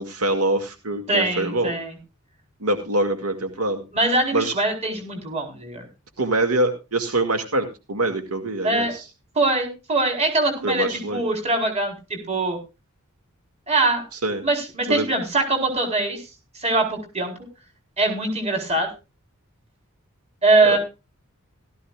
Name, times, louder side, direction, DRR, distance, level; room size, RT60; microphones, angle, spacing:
voice 1, 0.0-1.7 2.6-3.8 4.3-4.5 6.2-9.0 10.6-11.2 14.2-14.4 14.9-15.1 20.6-20.8, right 2 dB, 80° right, 7 dB, 2.2 m, -24 dB
voice 2, 1.1-2.0 3.9-5.9 8.6-9.0 9.4-12.6 13.7-14.0 14.4-16.3 16.5-17.3 18.0-18.9 20.4-20.8, right 2 dB, 30° right, 3 dB, 4.3 m, -22 dB
17.0 x 13.5 x 2.4 m, 0.28 s
head